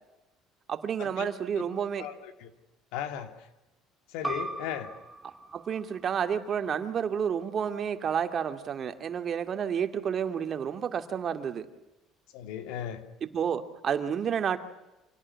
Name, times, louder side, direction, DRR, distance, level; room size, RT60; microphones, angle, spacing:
voice 1, 0.7-2.1 5.5-11.7 13.2-14.6, right 8 dB, 40° right, 8 dB, 2.5 m, -30 dB
voice 2, 2.0-2.5 2.9-3.3 4.1-4.9 12.3-13.0, left 10 dB, 80° left, 9 dB, 2.9 m, -36 dB
sound 1, 4.2-9.4, right 2 dB, 10° right, 2.5 m, -42 dB
26.5 x 18.0 x 9.8 m, 0.98 s
cardioid pair, 115°, 0 cm